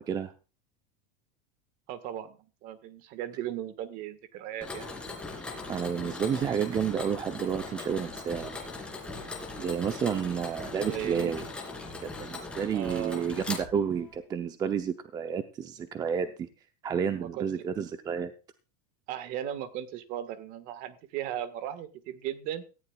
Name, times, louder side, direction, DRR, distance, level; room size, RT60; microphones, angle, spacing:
voice 1, 1.9-2.4 2.6-4.9 10.8-11.3 12.7-13.2 17.1-17.5 19.1-22.6, right 11 dB, 45° right, 12 dB, 1.6 m, -37 dB
Mechanisms, 4.6-14.2, left 3 dB, 5° left, 2.9 m, -40 dB
voice 2, 5.7-8.6 9.6-11.4 12.0-16.5 16.8-18.3, right 7 dB, 20° right, 9 dB, 0.7 m, -30 dB
18.0 x 14.0 x 2.4 m, 0.33 s
supercardioid pair, 160°, 20 cm